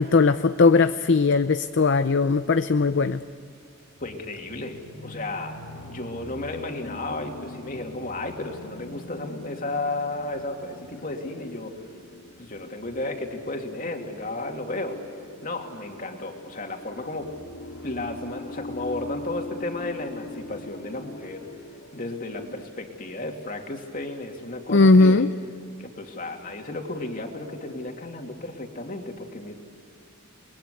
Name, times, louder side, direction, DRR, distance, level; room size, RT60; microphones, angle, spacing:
voice 1, 0.0-3.2 24.7-25.3, left 3 dB, 55° left, 11 dB, 0.6 m, -18 dB
sound 1, 3.9-22.6, left 2 dB, 85° left, 2.0 m, -43 dB
voice 2, 4.0-5.6 5.8-11.7 12.4-15.0 15.4-17.3 17.8-21.5 21.9-25.2 25.8-29.5, left 2 dB, 40° left, 2 dB, 2.8 m, -33 dB
29.5 x 21.5 x 8.4 m, 2.5 s
head